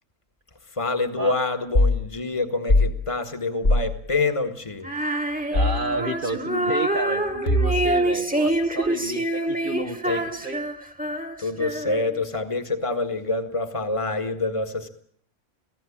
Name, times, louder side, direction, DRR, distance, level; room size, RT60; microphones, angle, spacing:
voice 1, 0.7-4.9 10.0-10.2 11.4-14.9, left 3 dB, 25° left, 9 dB, 1.8 m, -26 dB
sound 1, 1.8-2.0 2.7-3.0 3.6-3.9 5.6-5.9 7.5-8.0, left 1 dB, 50° left, 2.3 m, -20 dB
Female singing, 4.8-12.2, right 1 dB, 5° right, 1.7 m, -26 dB
voice 2, 5.5-10.6, right 2 dB, 45° right, 5 dB, 1.3 m, -30 dB
27.0 x 16.5 x 8.7 m, 0.64 s
omnidirectional pair, 1.3 m